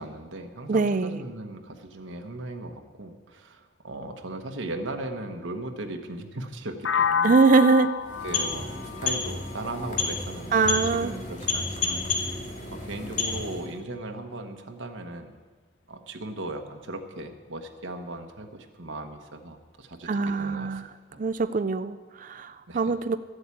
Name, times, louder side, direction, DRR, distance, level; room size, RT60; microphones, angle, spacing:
voice 1, 0.0-7.4 8.2-12.4 12.7-15.4 15.9-20.8 21.1-21.2 22.7-22.9, right 2 dB, 85° right, 4 dB, 1.3 m, -38 dB
voice 2, 0.7-1.2 7.2-7.9 10.5-11.1 20.1-20.9 21.2-23.2, right 4 dB, 45° right, 10 dB, 0.4 m, -23 dB
sound 1, 6.8-10.7, left 7 dB, 70° left, 0.5 m, -30 dB
sound 2, 8.0-13.8, left 4 dB, 40° left, 2.2 m, -31 dB
13.0 x 8.0 x 8.4 m, 1.4 s
head